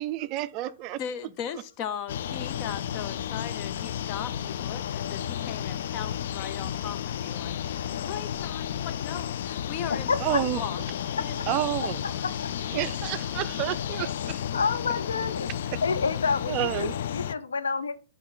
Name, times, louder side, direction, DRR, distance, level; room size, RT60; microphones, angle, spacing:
voice 1, 0.0-1.0 10.2-10.6 11.5-12.0 12.7-14.4 16.5-16.9, right 15 dB, 40° right, 0.4 m, -30 dB
voice 2, 1.0-7.6 7.9-10.8 11.2-12.4, left 9 dB, 40° left, 0.9 m, -38 dB
sound 1, 2.1-17.4, left 9 dB, 65° left, 0.5 m, -32 dB
voice 3, 9.9-10.4 11.2-11.4 12.2-12.5 14.5-15.5 15.8-17.9, left 5 dB, 85° left, 0.8 m, -28 dB
11.0 x 3.9 x 3.9 m
hypercardioid pair, 125°, 0 cm